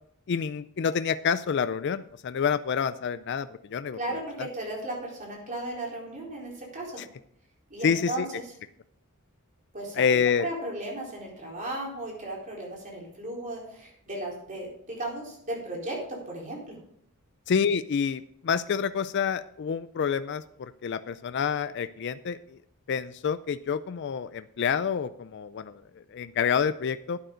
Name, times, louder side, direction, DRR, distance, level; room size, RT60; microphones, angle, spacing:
voice 1, 0.3-4.0 7.0-7.1 7.8-8.3 10.0-10.5 17.5-22.4 22.9-25.7 26.1-27.2, left 6 dB, 55° left, 13 dB, 0.4 m, -28 dB
voice 2, 3.9-7.0 7.7-8.5 9.7-10.0 10.4-16.8, right 1 dB, 35° right, -2 dB, 4.2 m, -35 dB
12.0 x 9.2 x 3.9 m, 0.68 s
head